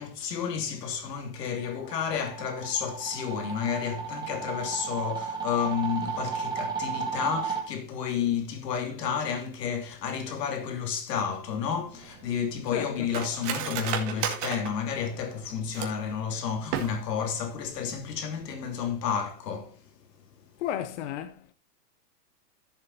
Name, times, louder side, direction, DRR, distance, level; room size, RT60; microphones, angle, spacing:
voice 1, 0.0-19.7, left 7 dB, 80° left, 3.0 m, -31 dB
sound 1, 1.5-7.6, right 5 dB, 10° right, 2.0 m, -34 dB
Cutlery silverware, 11.7-16.1 16.6-17.3 17.6-17.7 18.0-18.4 18.7-18.9, right 8 dB, 45° right, 2.2 m, -34 dB
voice 2, 12.7-13.1 20.6-21.5, left 11 dB, 45° left, 0.9 m, -34 dB
14.5 x 7.5 x 2.8 m
supercardioid pair, 160°, 48 cm